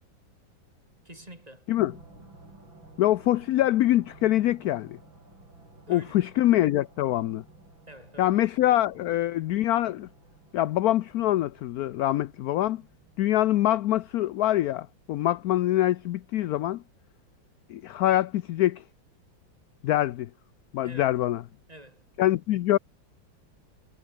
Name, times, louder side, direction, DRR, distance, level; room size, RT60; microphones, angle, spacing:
voice 1, 1.0-1.7 5.9-6.2 7.9-8.4 20.8-21.2 21.7-22.1, right 1 dB, 20° right, 6.9 m, -47 dB
sound 1, 1.8-14.5, right 2 dB, 80° right, 8.6 m, -54 dB
voice 2, 3.0-5.0 5.9-7.4 8.2-10.1 10.5-12.8 13.2-16.8 17.7-18.8 19.8-20.3 20.7-21.4 22.2-22.8, left 14 dB, 70° left, 0.9 m, -24 dB
omnidirectional pair, 2.1 m